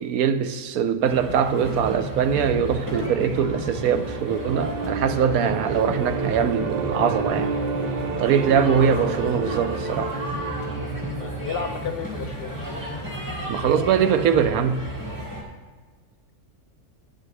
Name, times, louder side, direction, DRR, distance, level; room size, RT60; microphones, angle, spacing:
voice 1, 0.0-7.5 8.2-10.2 13.5-14.8, right 7 dB, 85° right, 1.1 m, -22 dB
sound 1, 1.0-15.4, right 1 dB, 15° right, 2.1 m, -32 dB
sound 2, 3.3-12.3, right 4 dB, 55° right, 0.8 m, -31 dB
voice 2, 11.2-12.5, left 6 dB, 55° left, 0.7 m, -32 dB
11.5 x 9.0 x 3.3 m
omnidirectional pair, 1.5 m